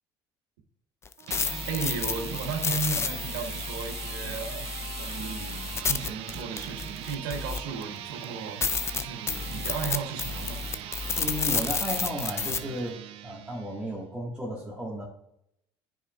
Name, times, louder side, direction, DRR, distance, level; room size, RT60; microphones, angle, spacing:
sound 1, 1.0-7.8 8.2-8.3 8.6-12.6, left 5 dB, 25° left, 0.5 m, -31 dB
sound 2, 1.2-14.0, right 11 dB, 70° right, 0.5 m, -41 dB
voice 1, 1.7-8.6 8.9-10.6, right 5 dB, 90° right, 4 dB, 1.2 m, -35 dB
voice 2, 11.2-15.1, equal, 10° right, -4 dB, 1.6 m, -34 dB
9.6 x 4.8 x 2.4 m, 0.76 s
supercardioid pair, 80°, 10 cm